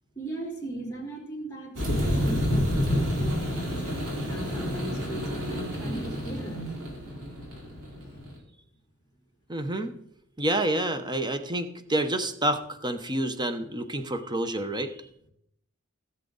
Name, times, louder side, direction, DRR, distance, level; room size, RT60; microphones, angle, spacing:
voice 1, 0.2-3.8 4.2-6.9, right 1 dB, 15° left, -4 dB, 3.6 m, -37 dB
sound 1, 1.8-8.4, equal, 90° right, 4.4 m, -29 dB
voice 2, 9.5-10.0 10.4-14.9, right 1 dB, 20° right, 9 dB, 0.9 m, -28 dB
17.0 x 7.3 x 4.0 m, 0.74 s
head